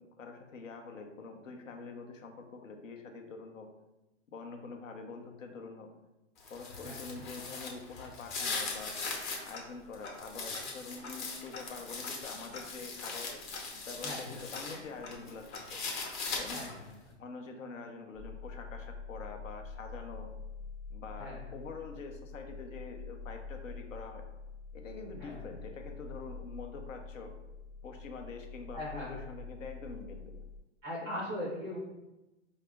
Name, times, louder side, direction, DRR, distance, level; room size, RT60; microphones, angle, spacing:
voice 1, 0.0-3.7 4.3-5.9 6.5-9.0 9.4-13.4 13.8-15.8 16.4-16.7 17.2-20.3 20.9-24.2 24.7-27.3 27.8-30.4 31.0-31.2, left 4 dB, 85° left, 4 dB, 0.8 m, -45 dB
sound 1, 6.4-9.5 9.9-14.8 15.1-16.9, left 4 dB, 40° left, 0.9 m, -40 dB
voice 2, 6.8-7.2 14.0-14.4 16.5-17.1 21.2-21.5 25.2-25.4 28.7-29.2 30.8-31.8, left 1 dB, 10° right, -6 dB, 0.3 m, -40 dB
Tick-tock, 8.5-9.3 9.5-9.6 10.0-16.5, left 3 dB, 65° left, 1.0 m, -49 dB
sound 2, 18.1-30.6, left 5 dB, 10° left, 0.8 m, -46 dB
4.9 x 2.0 x 3.4 m, 1.0 s
hypercardioid pair, 145°, 37 cm